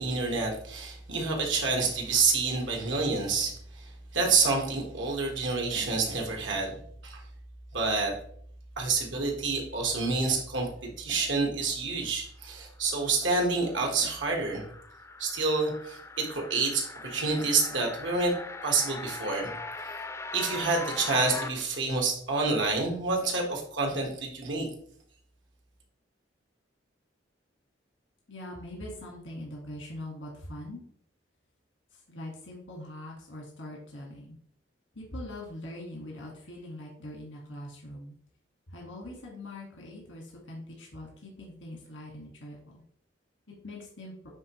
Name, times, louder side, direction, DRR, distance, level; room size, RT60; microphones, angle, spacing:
voice 1, 0.0-6.7 7.0-7.2 7.7-8.2 8.8-10.7 11.0-14.6 15.2-18.3 18.6-19.5 20.3-24.7, right 4 dB, 85° right, 1 dB, 1.5 m, -28 dB
sound 1, 13.1-21.5, left 3 dB, 15° left, 0.4 m, -41 dB
voice 2, 28.3-30.8 31.9-34.4 35.0-38.1 38.7-42.8 43.5-44.1, left 1 dB, 90° left, -1 dB, 1.7 m, -42 dB
9.2 x 3.5 x 3.1 m, 0.64 s
head